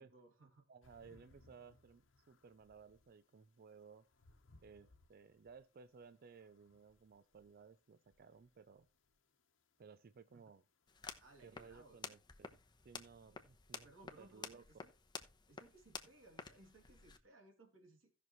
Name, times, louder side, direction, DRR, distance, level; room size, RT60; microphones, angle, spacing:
voice 1, 0.0-0.6 10.3-10.4 11.2-12.1 13.8-14.9 15.5-18.1, right 2 dB, 90° right, 2.7 m, -63 dB
voice 2, 0.7-4.1 4.6-8.9 9.8-10.6 11.4-12.6 12.8-13.9 14.2-14.6, right 5 dB, 50° right, 0.4 m, -59 dB
sound 1, 0.8-11.2, left 2 dB, 70° left, 1.0 m, -71 dB
sound 2, 10.9-17.2, left 5 dB, 20° left, 0.9 m, -52 dB
16.5 x 6.1 x 3.1 m
head